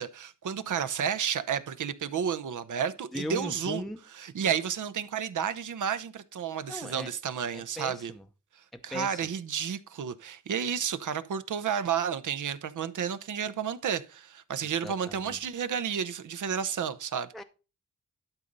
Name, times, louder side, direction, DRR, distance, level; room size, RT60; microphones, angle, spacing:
voice 1, 0.0-3.8 4.2-8.1 8.8-17.3, right 7 dB, 70° right, 0.9 m, -31 dB
voice 2, 3.1-4.0 6.7-7.1 7.5-8.3 8.7-9.3 14.6-15.4 17.3-17.4, left 1 dB, ahead, 0.6 m, -39 dB
12.0 x 4.0 x 5.3 m
cardioid pair, 95°, 31 cm